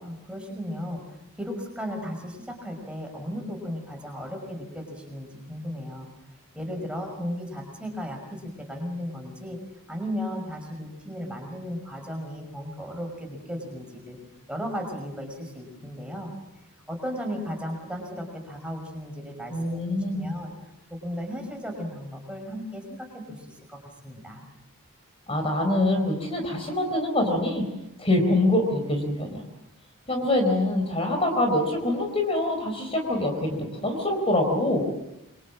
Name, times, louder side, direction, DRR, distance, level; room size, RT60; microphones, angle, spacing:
voice 1, 0.0-6.1 6.5-9.6 9.9-14.2 14.5-16.3 16.9-24.4, equal, 5° right, 3 dB, 5.7 m, -35 dB
voice 2, 19.5-20.3 25.3-27.6 28.0-29.4 30.1-34.9, left 1 dB, 25° left, 4 dB, 4.2 m, -25 dB
28.0 x 24.5 x 7.4 m, 0.88 s
head